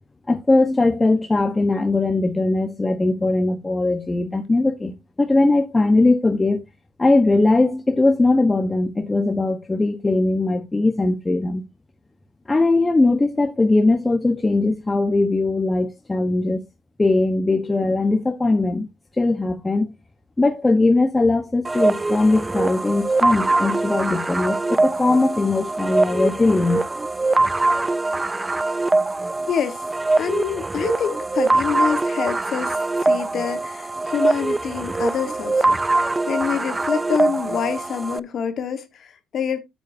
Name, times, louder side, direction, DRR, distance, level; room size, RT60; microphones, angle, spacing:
voice 1, 0.3-6.6 7.0-11.6 12.5-16.6 17.0-18.9 19.2-19.9 20.4-26.8, left 2 dB, 20° left, 1.0 m, -20 dB
sound 1, 21.6-38.2, right 2 dB, 20° right, 0.4 m, -22 dB
voice 2, 29.5-29.8 30.2-39.6, left 7 dB, 55° left, 1.3 m, -26 dB
8.9 x 8.0 x 2.7 m
supercardioid pair, 80°, 0 cm